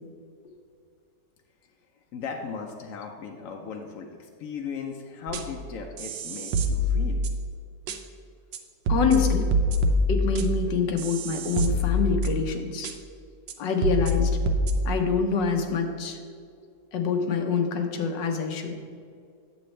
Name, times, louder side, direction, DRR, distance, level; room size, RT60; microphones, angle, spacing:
voice 1, 2.1-7.3, left 5 dB, 65° left, 2 dB, 0.8 m, -37 dB
sound 1, 5.3-5.6 6.0-7.5 7.9-8.0 8.5-8.6 8.9-12.5 12.8-12.9 13.5-13.6 13.8-14.7, left 1 dB, 85° right, 1.3 m, -25 dB
voice 2, 8.9-9.5 10.1-12.9 13.6-14.4 14.8-16.2 16.9-18.7, left 5 dB, 90° left, 4 dB, 1.5 m, -26 dB
9.2 x 7.2 x 3.2 m, 2.3 s
omnidirectional pair, 1.9 m